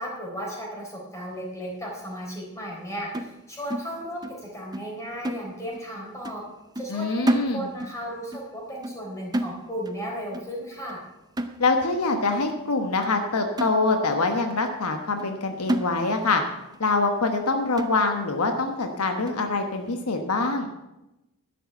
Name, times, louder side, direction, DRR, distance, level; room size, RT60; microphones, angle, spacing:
voice 1, 0.0-6.4 6.8-11.0, equal, 15° left, -2 dB, 4.1 m, -35 dB
sound 1, 3.1-4.5 4.7-5.0 5.2-5.9 6.2-6.5 6.8-8.0 8.3-8.5 8.8-9.1 9.3-10.0 10.3-10.6 10.9-11.1 11.4-12.0 12.5-12.6 13.0-13.2 13.6-14.3 14.7-14.8 15.2-15.4 15.7-16.4 16.7-16.8 17.3-17.4 17.8-18.3 18.8-18.9 19.3-19.5, right 1 dB, 20° right, 0.6 m, -31 dB
voice 2, 6.9-7.7 11.6-16.4 16.8-20.7, left 3 dB, 85° left, 5 dB, 1.2 m, -24 dB
11.5 x 6.7 x 7.7 m, 0.93 s
head